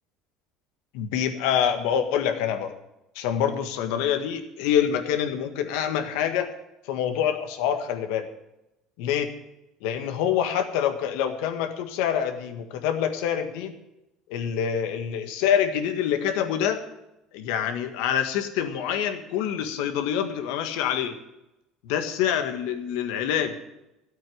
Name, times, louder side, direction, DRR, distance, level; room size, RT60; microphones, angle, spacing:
voice 1, 0.9-2.7 3.1-6.5 6.8-8.3 9.0-9.3 9.8-13.7 14.3-16.8 17.3-21.1 21.9-23.6, left 9 dB, 80° left, 7 dB, 1.7 m, -26 dB
13.0 x 8.7 x 8.0 m, 0.92 s
supercardioid pair, 100°, 0 cm